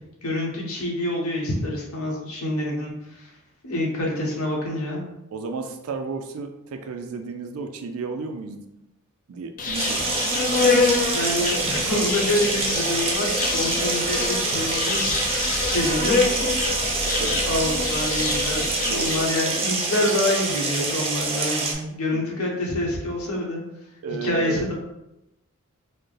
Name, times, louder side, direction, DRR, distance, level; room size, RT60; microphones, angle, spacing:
voice 1, 0.2-3.3 3.6-5.0 11.1-16.3 17.5-23.6 24.2-24.7, left 1 dB, 75° left, -2 dB, 1.1 m, -27 dB
voice 2, 5.3-8.6 9.3-10.3 17.0-17.4 18.8-19.2 22.1-22.2 24.0-24.7, right 4 dB, 70° right, 6 dB, 0.4 m, -33 dB
Insect, 9.6-19.4, left 4 dB, 40° left, 0.5 m, -26 dB
sound 1, 9.7-21.7, right 3 dB, 25° right, 0.6 m, -26 dB
4.4 x 2.1 x 3.2 m, 0.87 s
head